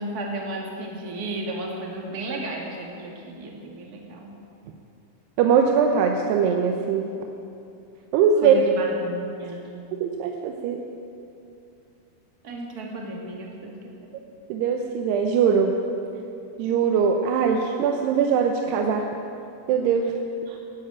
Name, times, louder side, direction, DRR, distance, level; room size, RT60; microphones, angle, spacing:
voice 1, 0.0-4.3 8.4-9.6 12.4-13.7 20.5-20.6, right 1 dB, 35° right, -1 dB, 1.7 m, -33 dB
voice 2, 5.4-7.1 8.1-8.6 10.0-10.8 14.5-15.7 16.6-19.1 19.7-20.1, right 6 dB, 80° right, 3 dB, 2.8 m, -21 dB
17.5 x 8.8 x 8.7 m, 2.7 s
omnidirectional pair, 4.7 m